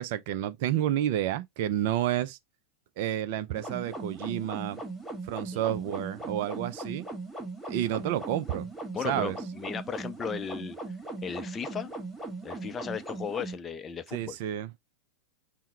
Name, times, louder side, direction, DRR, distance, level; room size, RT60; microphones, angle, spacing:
voice 1, 0.0-2.4 3.0-4.8 5.2-7.1 7.7-8.7 9.0-9.4 14.1-14.7, right 12 dB, 50° right, 0.5 m, -30 dB
sound 1, 3.5-13.5, right 2 dB, ahead, 1.5 m, -39 dB
voice 2, 8.9-10.8 11.2-11.9 12.4-14.4, left 7 dB, 20° left, 0.5 m, -36 dB
5.6 x 2.1 x 4.2 m
figure-of-eight pair, 90°, 0 cm